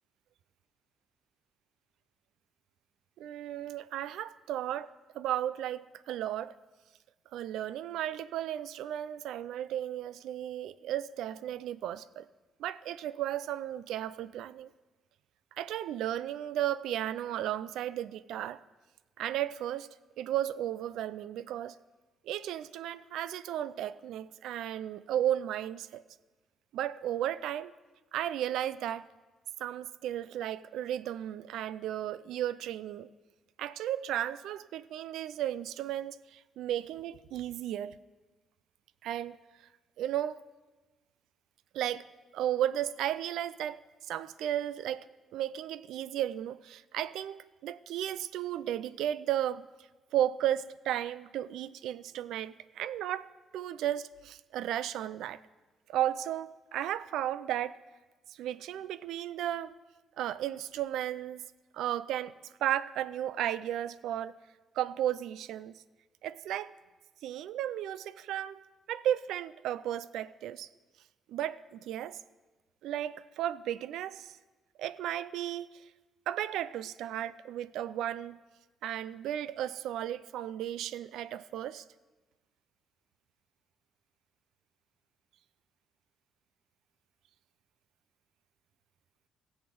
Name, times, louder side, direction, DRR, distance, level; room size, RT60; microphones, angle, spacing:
voice 1, 3.2-6.6 7.3-12.3 12.6-14.7 15.6-18.6 19.2-21.8 22.2-26.0 26.7-27.7 28.1-29.1 29.6-33.1 33.6-38.0 39.0-39.4 40.0-40.4 41.7-42.1 42.3-43.8 44.1-49.7 50.1-55.4 55.9-57.8 58.3-59.7 60.2-61.4 61.7-62.3 62.6-64.3 64.7-65.7 66.2-66.7 67.2-68.6 68.9-70.7 71.3-72.2 72.8-74.4 74.8-75.8 76.3-78.4 78.8-81.8, right 11 dB, 85° right, 18 dB, 0.4 m, -34 dB
15.5 x 8.0 x 5.2 m, 1.2 s
cardioid pair, 140°, 0 cm